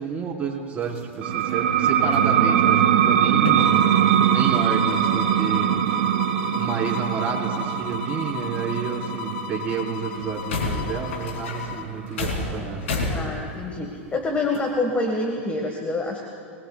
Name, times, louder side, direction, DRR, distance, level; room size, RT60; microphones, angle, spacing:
voice 1, 0.0-6.1 6.5-13.1, right 6 dB, 20° right, -4 dB, 3.9 m, -31 dB
sound 1, 0.8-1.6 1.9-2.7 3.5-4.0 4.3-4.6 5.1-5.2 5.4-7.0 7.7-8.8 9.3-9.4 9.8-9.9 10.1-13.8 14.5-14.7, left 3 dB, 80° left, 3.2 m, -32 dB
sound 2, 1.2-12.5, right 10 dB, 70° right, 1.0 m, -22 dB
sound 3, 3.6-11.9, left 11 dB, 60° left, 0.7 m, -35 dB
voice 2, 13.1-16.2, left 2 dB, 20° left, 2 dB, 1.6 m, -26 dB
28.0 x 20.0 x 2.4 m, 2.6 s
hypercardioid pair, 105°, 7 cm